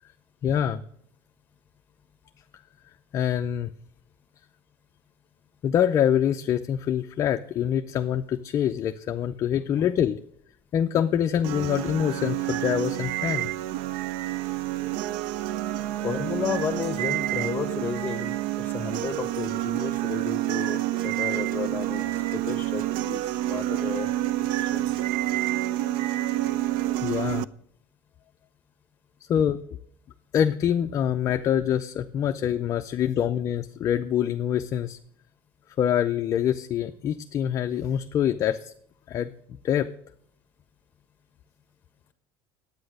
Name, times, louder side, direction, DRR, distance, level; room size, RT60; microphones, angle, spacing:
voice 1, 0.4-0.8 3.1-3.7 5.6-10.2 10.7-13.5 27.0-27.5 29.3-29.6 30.3-35.0 35.8-38.7 39.1-39.9, left 9 dB, 35° left, 8 dB, 0.5 m, -25 dB
sound 1, 11.4-27.5, right 15 dB, 75° right, 0.4 m, -28 dB
voice 2, 16.0-22.0 22.3-24.1 24.5-24.9, left 5 dB, 20° left, 9 dB, 1.4 m, -33 dB
9.9 x 8.8 x 6.4 m, 0.67 s
cardioid pair, 135°, 9 cm